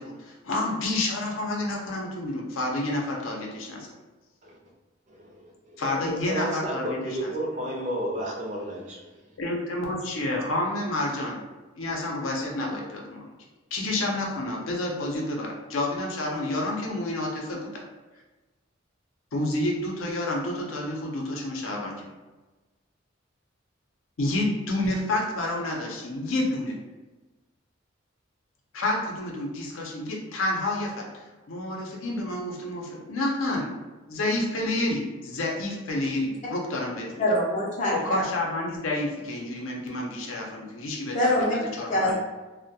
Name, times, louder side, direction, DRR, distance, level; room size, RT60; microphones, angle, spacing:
voice 1, 0.0-3.9 5.8-7.3 9.4-11.4 11.8-13.2 13.7-17.8 19.3-22.1 24.2-26.7 28.7-33.7 34.1-37.2 37.9-42.1, left 1 dB, 85° left, -1 dB, 0.5 m, -29 dB
voice 2, 5.7-9.0, right 1 dB, 35° right, -2 dB, 0.5 m, -32 dB
voice 3, 37.2-38.2 41.1-41.6 41.9-42.2, left 1 dB, 35° left, -4 dB, 0.4 m, -24 dB
2.2 x 2.1 x 2.7 m, 1.2 s
head